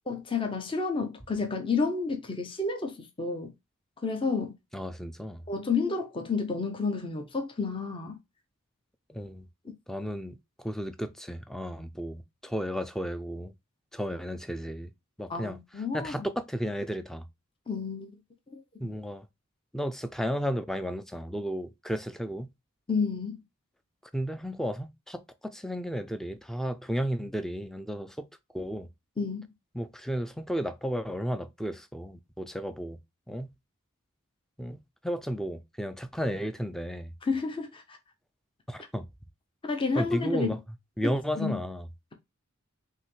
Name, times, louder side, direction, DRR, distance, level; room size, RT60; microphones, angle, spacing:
voice 1, 0.1-3.5 4.0-4.5 5.5-8.2 15.3-16.3 17.7-18.2 18.5-18.9 22.9-23.4 29.2-29.5 37.2-37.8 39.7-40.5 41.0-41.6, left 4 dB, 25° left, 0.8 m, -30 dB
voice 2, 4.7-5.4 9.1-9.5 9.9-13.5 13.9-14.9 15.2-17.2 18.8-19.3 19.7-22.5 24.1-28.3 28.5-28.9 29.7-33.0 33.3-33.5 34.6-37.1 38.7-39.1 40.0-40.6 41.0-41.9, equal, ahead, 0.4 m, -33 dB
5.6 x 2.8 x 3.1 m
head